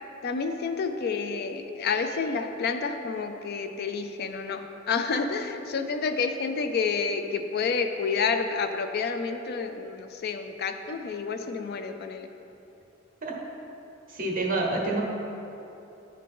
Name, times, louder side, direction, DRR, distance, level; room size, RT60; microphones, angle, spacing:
voice 1, 0.2-12.3, left 5 dB, 55° left, 7 dB, 0.4 m, -29 dB
voice 2, 14.1-15.0, right 2 dB, 45° right, -1 dB, 1.0 m, -27 dB
10.5 x 3.8 x 3.7 m, 2.9 s
head